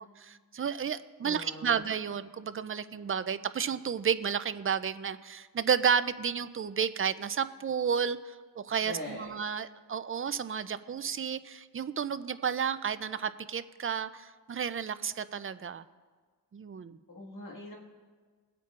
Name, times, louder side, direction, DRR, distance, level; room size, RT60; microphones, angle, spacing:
voice 1, 0.0-15.8 16.5-17.0, right 7 dB, 35° right, 13 dB, 0.4 m, -32 dB
voice 2, 1.2-1.9 8.8-9.3 17.1-17.8, left 1 dB, 50° left, -2 dB, 1.8 m, -41 dB
21.5 x 8.3 x 2.4 m, 1.5 s
wide cardioid pair, 90°, 41 cm